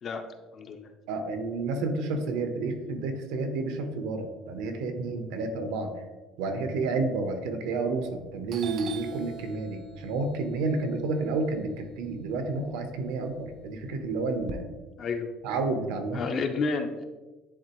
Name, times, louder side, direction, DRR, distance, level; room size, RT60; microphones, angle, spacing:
voice 1, 0.5-0.9 15.0-15.3 16.1-17.0, left 4 dB, 30° left, 6 dB, 0.5 m, -30 dB
voice 2, 1.1-5.9 6.4-14.7 15.4-16.2, right 3 dB, 80° right, 6 dB, 1.0 m, -30 dB
Doorbell, 7.9-8.2 8.5-12.6 13.0-14.5, right 5 dB, 35° right, 0.3 m, -45 dB
10.0 x 3.8 x 3.0 m, 1.2 s
cardioid pair, 175°, 0 cm